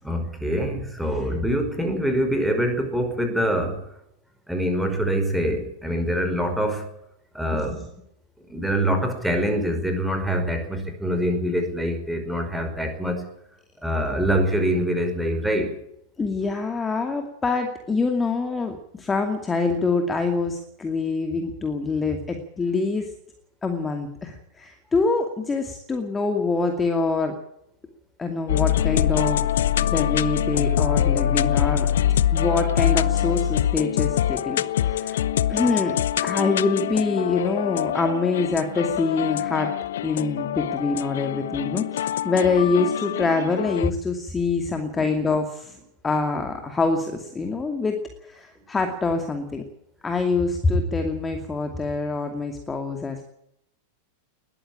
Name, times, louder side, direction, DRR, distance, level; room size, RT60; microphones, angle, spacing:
voice 1, 0.0-3.8 4.5-6.9 7.3-7.9 8.5-13.3 13.8-15.8 45.0-45.1, equal, ahead, 5 dB, 5.3 m, -24 dB
voice 2, 16.2-23.1 23.6-27.3 28.2-29.4 29.8-31.9 32.3-35.2 35.5-36.0 36.2-39.7 40.0-45.8 46.0-48.0 48.2-49.6 50.0-53.2, left 3 dB, 15° left, 5 dB, 2.5 m, -25 dB
sound 1, 28.5-43.9, left 11 dB, 60° left, 0.7 m, -24 dB
21.0 x 14.0 x 8.9 m, 0.76 s
figure-of-eight pair, 90°, 0 cm